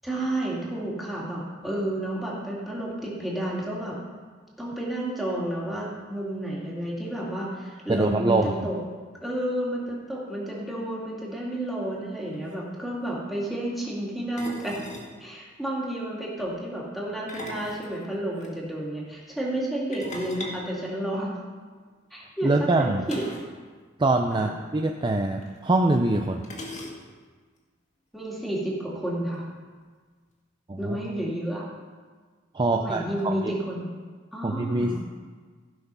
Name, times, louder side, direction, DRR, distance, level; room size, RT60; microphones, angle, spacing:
voice 1, 0.0-4.0 4.6-8.8 9.2-14.8 15.2-21.3 22.1-23.2 24.3-24.5 28.1-29.5 30.8-31.6 32.7-33.9 34.3-35.1, right 1 dB, ahead, -6 dB, 2.4 m, -31 dB
voice 2, 7.9-8.7 22.4-23.1 24.0-26.4 30.7-31.0 32.5-33.4 34.4-35.0, right 2 dB, 25° right, 3 dB, 0.5 m, -24 dB
sound 1, 12.0-12.1 12.3-12.6 14.4-15.2 17.1-18.5 19.9-21.6 23.1-23.6 23.8-23.9 24.2-24.4 25.4-25.5 26.4-27.3, left 1 dB, 40° left, 1.7 m, -40 dB
15.5 x 6.0 x 5.5 m, 1.5 s
head